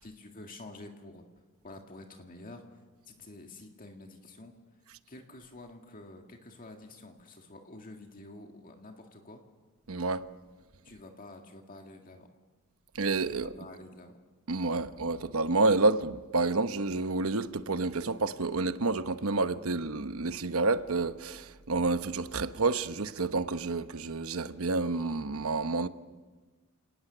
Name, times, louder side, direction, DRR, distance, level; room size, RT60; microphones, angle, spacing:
voice 1, 0.0-1.2 1.6-2.6 3.1-4.5 5.1-9.4 10.8-12.3 13.3-14.2 14.7-14.9, left 2 dB, 40° left, 1.9 m, -49 dB
voice 2, 9.9-10.2 12.9-13.5 14.5-25.9, right 3 dB, 70° right, 1.0 m, -29 dB
30.0 x 18.5 x 6.9 m
head